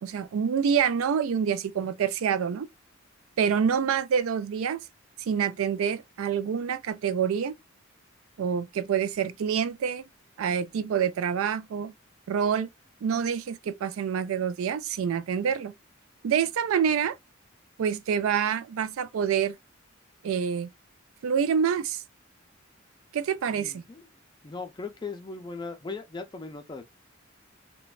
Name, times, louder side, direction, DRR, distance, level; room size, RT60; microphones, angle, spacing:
voice 1, 0.0-2.7 3.4-4.8 5.3-7.5 8.4-10.0 10.4-11.9 12.3-12.7 13.0-15.7 16.2-17.1 17.8-19.6 20.2-20.7 21.2-22.0 23.1-23.8, right 7 dB, 90° right, 0.3 m, -27 dB
voice 2, 23.5-24.0 24.4-26.8, left 4 dB, 20° left, 0.4 m, -38 dB
3.1 x 2.1 x 2.3 m
head